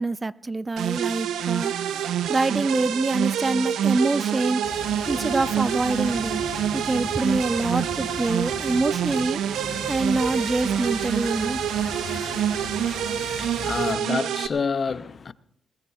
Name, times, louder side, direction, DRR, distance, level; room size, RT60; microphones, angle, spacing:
voice 1, 0.0-6.4 6.7-11.6, right 3 dB, 30° right, 0.4 m, -26 dB
sound 1, 0.8-14.5, right 9 dB, 85° right, 0.6 m, -27 dB
sound 2, 4.6-13.9, left 4 dB, 80° left, 2.5 m, -38 dB
voice 2, 13.4-15.3, left 5 dB, 50° left, 0.7 m, -28 dB
21.0 x 19.5 x 2.4 m
supercardioid pair, 60°, 0 cm